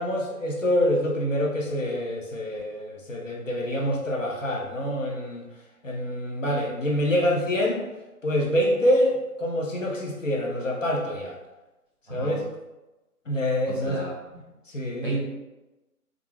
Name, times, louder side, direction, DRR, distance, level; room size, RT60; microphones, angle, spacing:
voice 1, 0.0-5.4 5.8-7.8 8.2-11.4 12.1-12.4 13.3-14.1 14.7-15.2, equal, 55° left, -1 dB, 0.5 m, -26 dB
voice 2, 13.7-14.4 15.0-15.2, right 3 dB, 35° right, -7 dB, 0.7 m, -33 dB
2.3 x 2.0 x 3.1 m, 1.0 s
hypercardioid pair, 175°, 46 cm